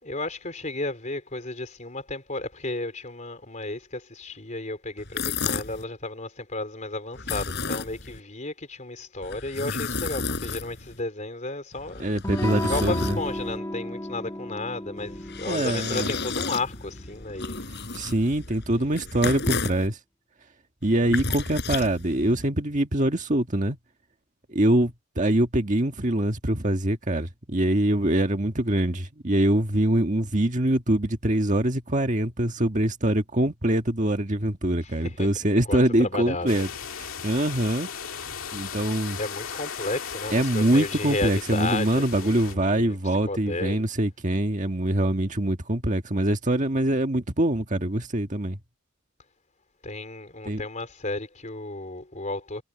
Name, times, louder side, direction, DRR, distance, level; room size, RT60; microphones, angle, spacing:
voice 1, 0.0-12.1 12.6-18.0 18.7-19.0 34.8-36.6 39.2-43.0 43.2-43.8 49.8-52.6, left 2 dB, 35° left, 4.0 m, -33 dB
sound 1, 5.0-5.8 7.1-8.2 9.2-11.0 11.7-13.6 15.0-19.9 20.8-22.5, left 4 dB, 50° left, 6.8 m, -32 dB
voice 2, 12.0-13.2 15.5-16.1 17.9-20.0 20.8-23.8 24.5-36.7 37.0-37.9 38.5-39.2 40.3-48.6 50.5-50.6, right 1 dB, 35° right, 1.6 m, -24 dB
Electric guitar / Strum, 12.2-17.6, left 1 dB, 15° left, 1.7 m, -34 dB
sound 2, 36.5-42.6, left 7 dB, 65° left, 2.3 m, -37 dB
head